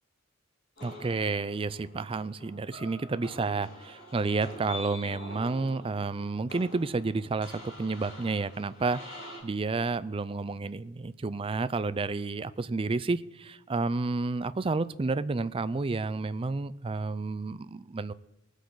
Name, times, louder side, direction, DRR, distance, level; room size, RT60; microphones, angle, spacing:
sound 1, 0.8-9.4, left 1 dB, 55° left, 4.7 m, -46 dB
voice 1, 0.8-18.1, right 3 dB, 25° right, 15 dB, 0.4 m, -31 dB
20.0 x 8.2 x 3.9 m, 1.0 s
head